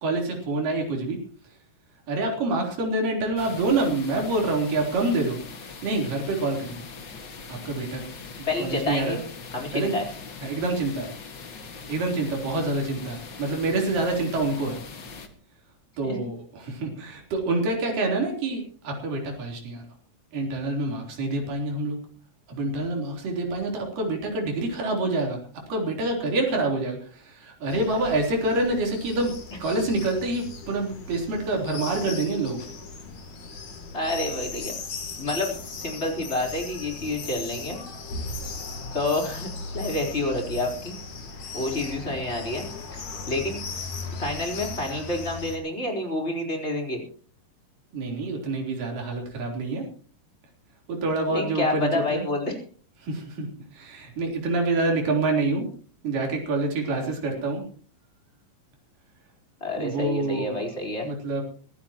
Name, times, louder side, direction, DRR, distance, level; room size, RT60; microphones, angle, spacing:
voice 1, 0.0-1.2 2.1-6.8 7.5-8.0 8.4-9.2 9.7-10.0 10.4-11.1 11.9-14.8 16.0-19.8 20.3-22.0 22.5-25.4 25.7-29.3 29.6-32.6 47.9-49.9 50.9-52.3 53.0-55.7 56.0-57.6 59.8-60.6 61.0-61.4, right 2 dB, 70° right, 1 dB, 5.3 m, -27 dB
sound 1, 3.4-15.3, left 4 dB, 40° left, 2.0 m, -41 dB
voice 2, 8.5-9.2 9.5-10.0 16.0-16.3 33.9-34.7 35.2-37.8 38.9-39.5 39.7-41.0 41.5-42.7 42.9-43.6 44.1-47.0 51.3-52.5 59.6-61.1, left 2 dB, 20° left, 0 dB, 4.1 m, -28 dB
sound 2, 27.7-45.6, left 3 dB, 55° left, 3.9 m, -37 dB
24.0 x 15.0 x 3.0 m, 0.41 s
omnidirectional pair, 4.0 m